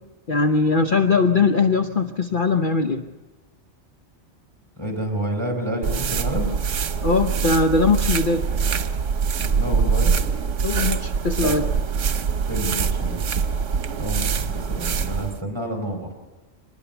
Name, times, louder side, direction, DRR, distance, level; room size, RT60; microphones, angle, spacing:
voice 1, 0.3-3.0 7.0-8.5 10.6-11.6, left 4 dB, 45° left, 6 dB, 1.0 m, -20 dB
voice 2, 4.8-6.6 9.5-10.1 11.4-11.6 12.5-13.2 13.9-16.1, right 1 dB, 25° right, 3 dB, 4.8 m, -29 dB
sound 1, 5.8-15.4, right 6 dB, 85° right, 1.3 m, -24 dB
24.0 x 20.0 x 7.0 m, 1.2 s
omnidirectional pair, 1.2 m